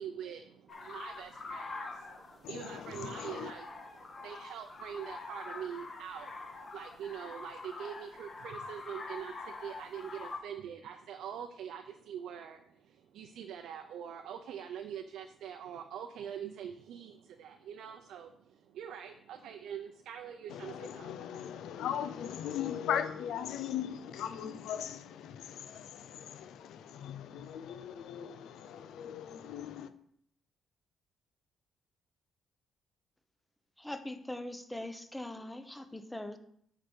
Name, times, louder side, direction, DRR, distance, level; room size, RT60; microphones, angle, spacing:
voice 1, 0.0-21.1, right 8 dB, 80° right, 0.6 m, -44 dB
sound 1, 0.7-10.4, left 3 dB, 40° left, 1.6 m, -45 dB
voice 2, 2.4-3.5 20.5-29.9, left 9 dB, 80° left, 0.7 m, -39 dB
voice 3, 33.8-36.4, left 1 dB, 5° left, 1.0 m, -41 dB
10.0 x 4.9 x 4.6 m
cardioid pair, 90°, 0 cm